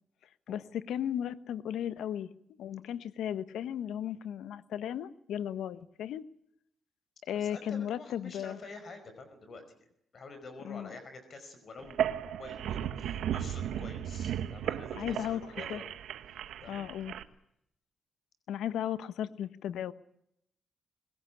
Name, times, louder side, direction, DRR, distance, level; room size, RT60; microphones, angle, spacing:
voice 1, 0.5-2.3 2.6-6.2 7.3-8.6 10.6-10.9 15.0-15.4 15.7-15.8 16.7-17.1 18.5-19.9, left 10 dB, 90° left, 14 dB, 1.1 m, -35 dB
voice 2, 7.3-9.9 10.1-15.9 16.3-16.9, left 3 dB, 55° left, 9 dB, 5.1 m, -48 dB
sound 1, 11.8-17.2, right 10 dB, 90° right, 1.3 m, -35 dB
21.0 x 17.0 x 10.0 m, 0.74 s
cardioid pair, 95°, 0 cm